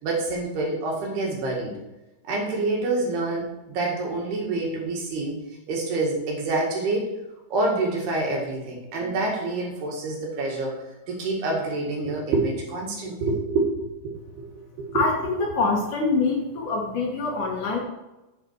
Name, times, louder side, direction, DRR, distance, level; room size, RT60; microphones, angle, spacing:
voice 1, 0.0-1.7 2.2-5.4 5.7-7.1 7.5-10.7 11.1-14.5 14.8-15.0, right 2 dB, 70° right, -1 dB, 3.9 m, -27 dB
voice 2, 14.9-17.8, left 3 dB, 60° left, -1 dB, 2.4 m, -25 dB
8.9 x 8.0 x 4.7 m, 0.99 s
omnidirectional pair, 4.8 m